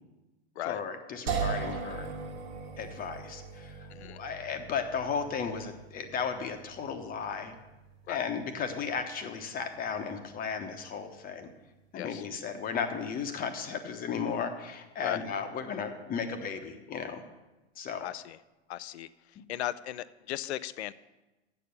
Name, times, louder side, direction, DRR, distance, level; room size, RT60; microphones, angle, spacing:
voice 1, 0.7-2.1 2.8-7.6 8.1-11.5 11.9-17.2 17.8-18.1, left 6 dB, 25° left, 7 dB, 1.0 m, -35 dB
sound 1, 1.3-14.3, right 5 dB, 60° right, 1.5 m, -42 dB
voice 2, 3.9-4.2 8.1-8.3 12.0-12.2 15.0-15.2 18.0-18.4 18.7-20.9, left 13 dB, 70° left, 17 dB, 0.5 m, -37 dB
8.4 x 6.9 x 6.8 m, 1.1 s
hypercardioid pair, 110°, 34 cm